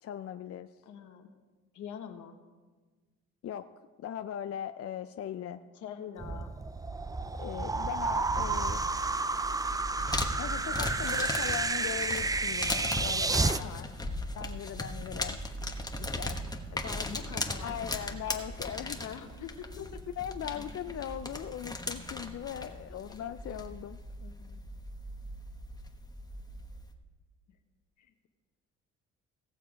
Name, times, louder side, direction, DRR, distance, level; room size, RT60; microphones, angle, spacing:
voice 1, 0.0-0.7 3.4-3.7 4.0-5.6 7.4-8.8 10.4-13.7 14.3-15.4 16.0-16.4 17.6-19.1 20.2-24.0, left 10 dB, 50° left, 9 dB, 0.5 m, -39 dB
voice 2, 0.8-1.3 1.7-2.4 5.7-6.5 13.3-13.9 16.7-18.1 19.0-19.8 20.5-20.6 24.2-24.6 27.5-27.6 28.0-28.3, left 8 dB, 75° left, 6 dB, 1.3 m, -44 dB
sound 1, 6.2-13.6, right 3 dB, 10° right, 0.3 m, -31 dB
sound 2, 7.9-26.9, left 1 dB, 15° left, 1.2 m, -38 dB
17.5 x 6.8 x 5.1 m, 1.3 s
cardioid pair, 90°, 30 cm